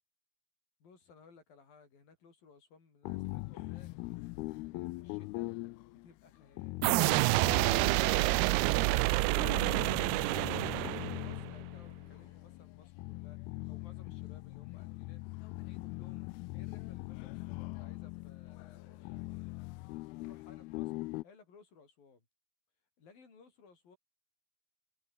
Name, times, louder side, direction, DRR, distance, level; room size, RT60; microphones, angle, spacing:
voice 1, 0.8-4.3 4.7-5.5 5.9-7.0 8.2-15.2 15.6-19.6 20.0-22.3 23.0-24.0, left 5 dB, 65° left, 8.0 m, -60 dB
sound 1, 3.1-21.2, left 22 dB, 85° left, 2.5 m, -42 dB
sound 2, 6.8-11.5, right 23 dB, 85° right, 2.5 m, -28 dB
omnidirectional pair, 4.5 m